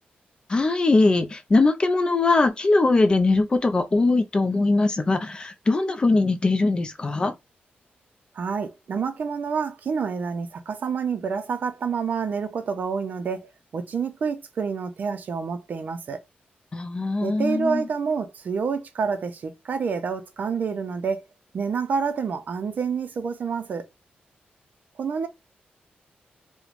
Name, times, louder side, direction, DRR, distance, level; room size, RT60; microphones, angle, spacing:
voice 1, 0.5-7.3 16.7-17.9, left 3 dB, 25° left, 0.4 m, -21 dB
voice 2, 8.3-16.2 17.2-21.2 21.5-23.9 25.0-25.3, right 5 dB, 55° right, 0.5 m, -28 dB
3.0 x 2.1 x 2.5 m
wide cardioid pair, 140°, 3 cm